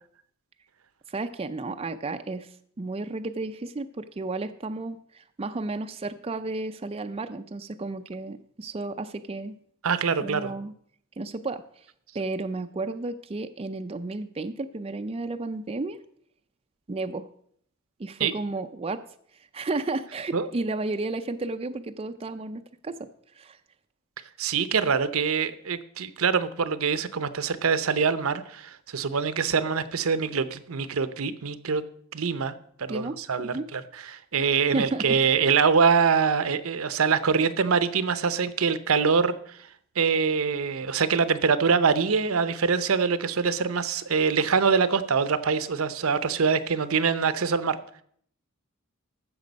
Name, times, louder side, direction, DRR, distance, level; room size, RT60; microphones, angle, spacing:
voice 1, 1.1-9.6 10.2-10.7 11.2-11.6 12.1-16.0 16.9-17.3 18.0-19.0 19.5-23.1 23.3-23.6 32.9-33.2 33.4-33.7 34.7-35.3, right 2 dB, 30° right, 8 dB, 0.5 m, -32 dB
voice 2, 9.8-10.5 18.2-18.3 20.3-20.5 24.4-31.8 32.1-39.7 40.0-47.8, right 5 dB, 70° right, 13 dB, 0.7 m, -24 dB
15.0 x 6.1 x 5.2 m, 0.63 s
head